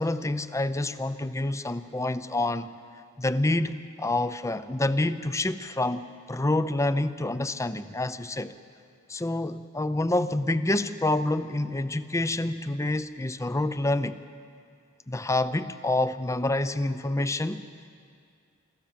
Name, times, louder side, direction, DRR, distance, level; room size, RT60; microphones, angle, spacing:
voice 1, 0.0-2.7 3.2-8.5 9.1-14.2 15.1-17.6, left 2 dB, 15° left, 13 dB, 0.6 m, -27 dB
26.0 x 14.0 x 7.5 m, 2.3 s
head